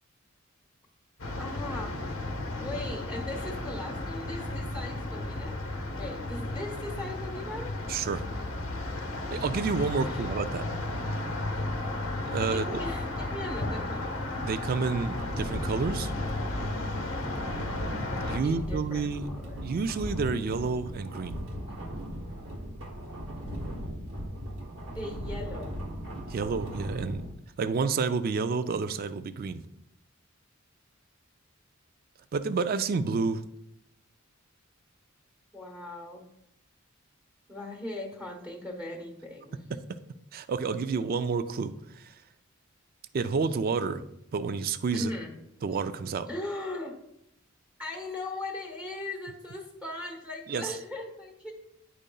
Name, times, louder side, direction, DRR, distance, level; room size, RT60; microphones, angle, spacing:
sound 1, 1.2-18.4, left 2 dB, 70° left, 0.8 m, -34 dB
voice 1, 1.4-2.2 2.6-7.8 10.0-10.3 12.5-14.2 18.4-19.6 24.9-25.8 35.5-36.2 37.5-39.6 44.9-45.3 46.3-46.9 47.8-51.5, left 2 dB, 10° right, 0 dB, 1.1 m, -39 dB
voice 2, 7.9-8.2 9.3-10.6 12.3-12.8 14.4-16.1 18.2-19.3 19.6-21.4 26.3-27.3 27.6-29.6 32.3-33.4 39.7-39.8 40.3-42.1 43.1-44.0 44.3-45.1 45.6-46.3 50.5-50.7, right 4 dB, 45° right, 12 dB, 0.3 m, -29 dB
sound 2, 15.1-27.3, equal, 65° right, 1.1 m, -38 dB
9.8 x 5.1 x 2.3 m, 0.79 s
head